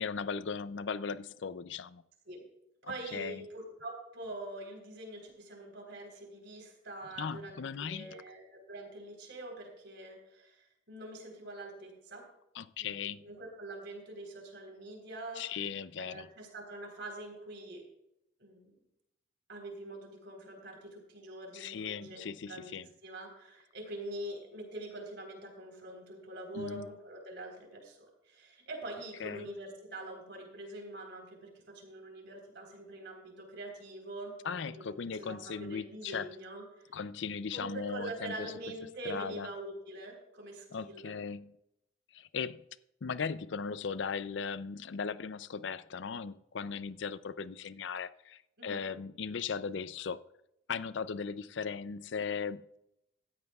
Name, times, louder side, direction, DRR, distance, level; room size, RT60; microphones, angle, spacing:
voice 1, 0.0-2.0 2.8-3.4 7.2-8.1 12.5-13.2 15.4-16.3 21.5-22.9 26.5-26.9 29.2-29.5 34.4-36.3 36.9-38.5 39.0-39.5 40.7-41.5 42.1-42.6 43.0-50.2 50.7-52.8, left 6 dB, 65° left, 0.5 m, -38 dB
voice 2, 2.9-12.2 12.8-15.7 16.0-17.8 18.4-18.7 19.5-22.8 23.0-28.0 28.2-34.3 34.6-36.9 37.5-41.1 48.6-48.9, right 1 dB, 60° right, 3.9 m, -44 dB
16.0 x 13.5 x 2.4 m
head